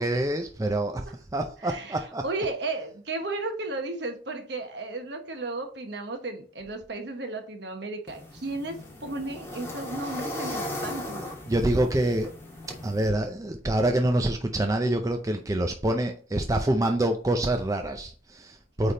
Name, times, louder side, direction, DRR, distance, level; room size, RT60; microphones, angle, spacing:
voice 1, 0.0-2.2 11.5-12.3 12.8-18.9, right 1 dB, 15° right, 0.5 m, -26 dB
voice 2, 1.6-1.9 2.2-11.2, right 2 dB, 60° right, 1.2 m, -34 dB
sound 1, 8.1-13.1, left 1 dB, 15° left, 1.5 m, -37 dB
8.4 x 3.5 x 3.8 m
head